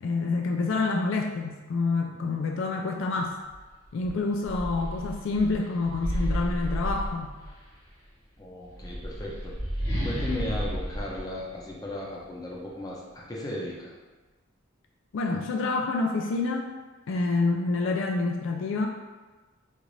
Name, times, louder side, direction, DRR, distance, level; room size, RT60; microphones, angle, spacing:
voice 1, 0.0-3.3 3.9-7.3 15.1-16.7 17.1-18.9, left 3 dB, 65° left, 2 dB, 0.3 m, -27 dB
sound 1, 3.5-3.6 4.0-7.7 8.6-12.2, equal, 85° left, 1.4 m, -32 dB
voice 2, 8.4-13.9, left 1 dB, 20° left, -4 dB, 0.5 m, -36 dB
3.9 x 2.5 x 3.1 m, 1.3 s
head